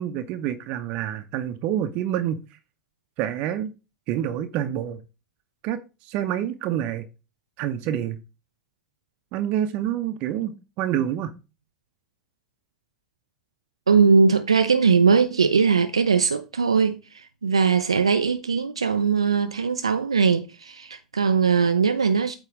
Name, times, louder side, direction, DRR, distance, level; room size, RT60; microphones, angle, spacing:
voice 1, 0.0-2.4 3.2-3.7 4.1-5.0 5.6-7.1 7.6-8.2 9.3-11.3, right 11 dB, 55° right, 0.7 m, -27 dB
voice 2, 13.9-22.4, right 5 dB, 90° right, 0.4 m, -20 dB
8.4 x 3.0 x 5.0 m
hypercardioid pair, 80°, 3 cm